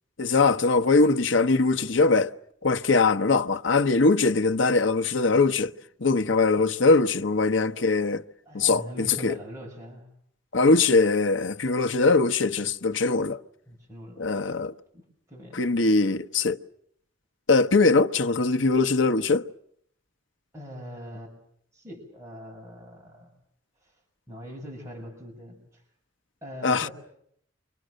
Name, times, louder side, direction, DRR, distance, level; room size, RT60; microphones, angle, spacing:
voice 1, 0.2-2.3 2.6-5.7 6.0-8.2 8.5-9.3 10.5-13.4 14.2-14.7 15.5-16.6 17.5-19.5 26.6-26.9, left 3 dB, 80° left, 1.1 m, -21 dB
voice 2, 8.4-10.1 13.7-14.5 14.9-15.7 20.5-21.3 21.7-23.3 23.8-24.0 24.3-25.8 26.4-26.9, equal, 15° right, 6.9 m, -42 dB
29.5 x 26.0 x 6.5 m
head